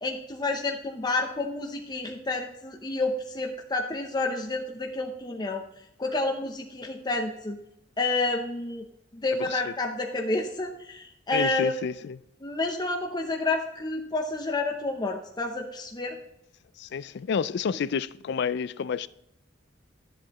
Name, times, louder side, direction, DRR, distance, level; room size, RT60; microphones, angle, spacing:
voice 1, 0.0-5.6 6.0-7.6 8.0-8.8 9.1-11.7 12.4-16.2, left 2 dB, 20° left, 0.7 m, -29 dB
voice 2, 9.3-9.7 11.3-12.2 16.8-19.1, left 6 dB, 60° left, 0.4 m, -30 dB
11.0 x 7.6 x 3.0 m
head